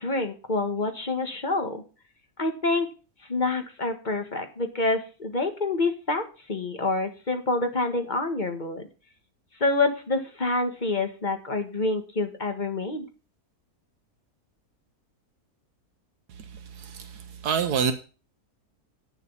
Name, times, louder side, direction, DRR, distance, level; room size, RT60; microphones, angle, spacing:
voice 1, 0.0-1.8 2.4-2.9 3.3-8.8 9.6-13.1, left 2 dB, 30° left, 1.7 m, -27 dB
voice 2, 16.7-17.9, right 7 dB, 85° right, 1.5 m, -27 dB
9.5 x 7.4 x 5.6 m
omnidirectional pair, 1.6 m